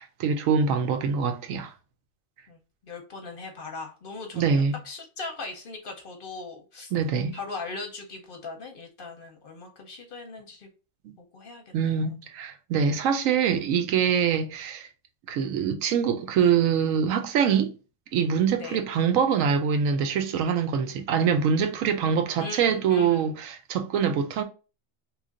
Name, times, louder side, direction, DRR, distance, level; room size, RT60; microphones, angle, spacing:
voice 1, 0.0-1.7 4.3-4.7 6.9-7.4 11.0-11.1 11.7-14.9 15.3-17.7 18.1-24.4, right 7 dB, 90° right, 1.0 m, -24 dB
voice 2, 2.5-6.9 7.3-10.7 11.2-12.2 18.6-18.8 22.4-23.4, left 3 dB, 55° left, 0.7 m, -39 dB
3.1 x 2.4 x 3.7 m
omnidirectional pair, 1.3 m